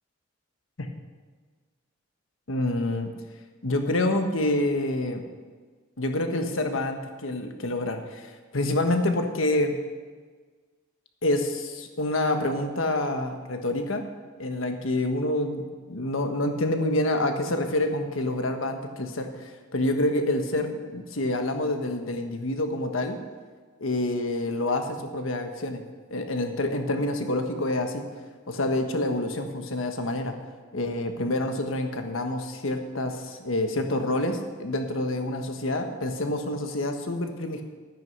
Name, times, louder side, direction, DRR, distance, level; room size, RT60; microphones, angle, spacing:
voice 1, 2.5-3.1 3.6-5.2 6.0-9.8 11.2-14.0 14.4-15.6 15.9-23.2 23.8-25.8 26.1-28.0 28.5-30.3 30.7-37.6, left 1 dB, 80° left, 5 dB, 1.3 m, -27 dB
12.5 x 9.2 x 5.4 m, 1.5 s
head